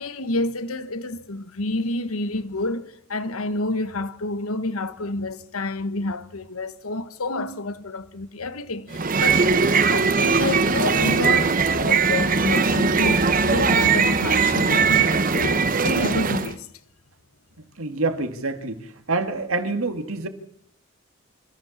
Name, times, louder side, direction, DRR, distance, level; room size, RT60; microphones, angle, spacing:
voice 1, 0.0-16.7, left 2 dB, 90° left, 1.3 m, -29 dB
sound 1, 8.9-16.5, right 5 dB, 40° right, 1.0 m, -20 dB
voice 2, 17.8-18.8 19.1-20.3, right 3 dB, 80° right, 2.2 m, -26 dB
26.5 x 14.5 x 7.3 m
head